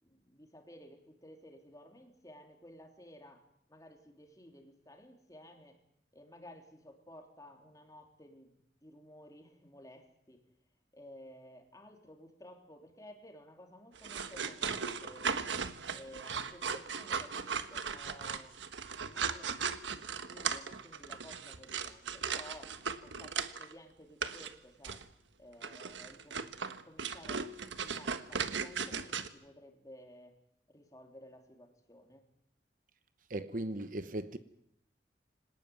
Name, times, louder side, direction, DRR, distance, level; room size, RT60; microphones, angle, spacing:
voice 1, 0.0-3.4 3.7-5.8 6.1-10.4 10.9-15.5 15.9-22.8 23.0-25.0 25.4-27.5 27.7-30.3 30.7-32.2, left 1 dB, 20° left, 3.5 m, -55 dB
sound 1, 14.0-23.7 24.2-24.5 24.8-25.0 25.6-29.3, right 6 dB, 90° right, 1.4 m, -37 dB
voice 2, 33.3-34.4, right 1 dB, 45° right, 0.9 m, -37 dB
25.5 x 18.5 x 9.5 m
head